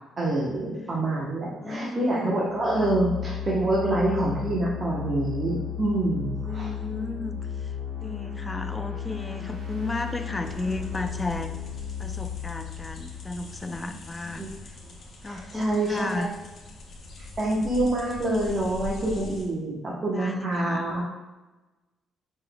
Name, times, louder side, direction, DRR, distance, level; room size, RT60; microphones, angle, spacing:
voice 1, 0.2-6.7 14.4-14.5 15.2-16.2 17.4-21.0, right 1 dB, 40° right, -5 dB, 0.8 m, -26 dB
voice 2, 1.5-2.3 2.7-2.9 6.3-11.5 12.0-14.8 15.2-16.3 20.1-20.9, left 2 dB, 20° left, 7 dB, 0.4 m, -34 dB
sound 1, 2.4-14.2, left 8 dB, 70° right, 1.2 m, -35 dB
sound 2, 10.4-19.4, left 2 dB, 55° left, 0.9 m, -42 dB
5.1 x 3.9 x 2.2 m, 1.1 s
cardioid pair, 90°, 0 cm